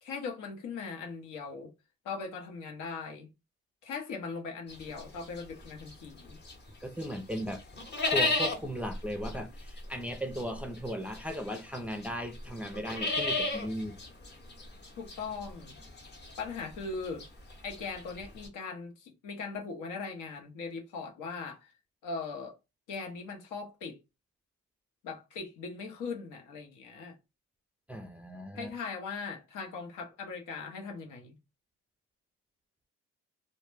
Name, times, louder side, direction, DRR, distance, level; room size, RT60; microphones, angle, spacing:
voice 1, 0.0-1.7 2.0-3.3 3.8-6.4 15.0-15.8 16.4-17.2 17.6-21.7 22.0-22.6 22.9-24.0 25.0-27.2 28.5-31.4, left 4 dB, 85° left, 0.8 m, -39 dB
sound 1, 4.7-6.7 7.0-18.5, left 2 dB, 35° left, 0.8 m, -35 dB
voice 2, 6.8-7.6 8.1-14.0 27.9-28.7, equal, 5° right, 0.4 m, -37 dB
2.1 x 2.1 x 3.1 m
cardioid pair, 90°, 30 cm